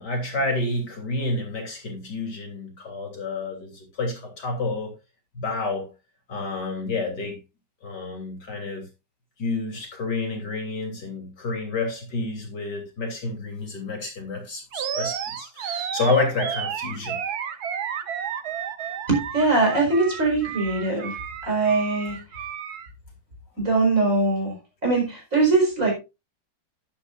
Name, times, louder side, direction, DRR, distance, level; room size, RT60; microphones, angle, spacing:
voice 1, 0.0-4.9 5.3-5.9 6.3-7.4 7.8-8.8 9.4-17.2, left 3 dB, 60° left, 3.7 m, -29 dB
Animal, 14.7-22.9, right 8 dB, 60° right, 1.4 m, -32 dB
voice 2, 19.1-21.2 21.4-22.2 23.6-24.6 24.8-25.9, right 3 dB, 40° right, 5.0 m, -22 dB
11.5 x 10.5 x 2.5 m
omnidirectional pair, 2.0 m